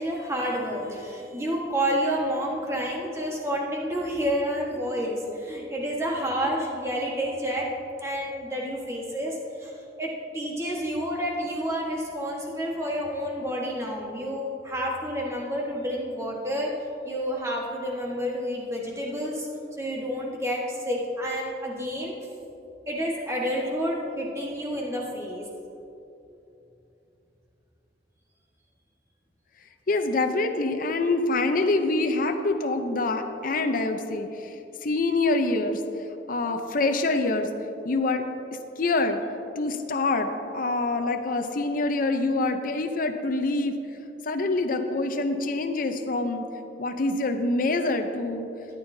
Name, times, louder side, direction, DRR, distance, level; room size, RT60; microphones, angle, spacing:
voice 1, 0.0-7.7 8.0-9.7 10.0-16.7 17.0-19.5 19.8-22.1 22.9-25.4, equal, 15° right, -2 dB, 1.3 m, -29 dB
voice 2, 29.9-34.6 34.8-35.8 36.3-37.5 37.8-38.3 38.8-39.2 39.6-43.8 44.3-46.4 46.8-48.5, left 2 dB, 50° left, 6 dB, 0.6 m, -25 dB
13.5 x 10.5 x 2.7 m, 2.9 s
head